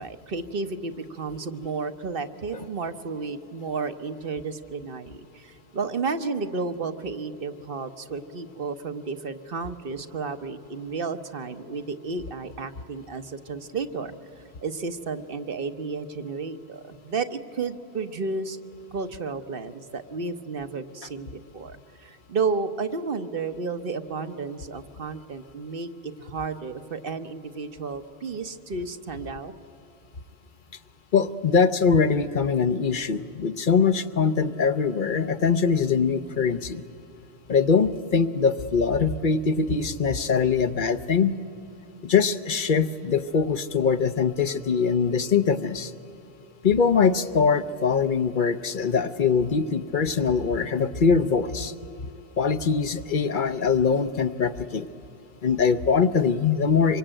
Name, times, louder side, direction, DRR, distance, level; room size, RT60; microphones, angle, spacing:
voice 1, 0.0-18.6 18.9-29.5, right 4 dB, 60° right, 9 dB, 1.2 m, -32 dB
voice 2, 31.1-36.8 37.5-41.3 42.0-45.9 46.6-51.7 52.4-54.9 55.4-57.0, left 5 dB, 55° left, 11 dB, 0.9 m, -22 dB
25.5 x 24.0 x 8.9 m, 2.7 s
omnidirectional pair, 1.0 m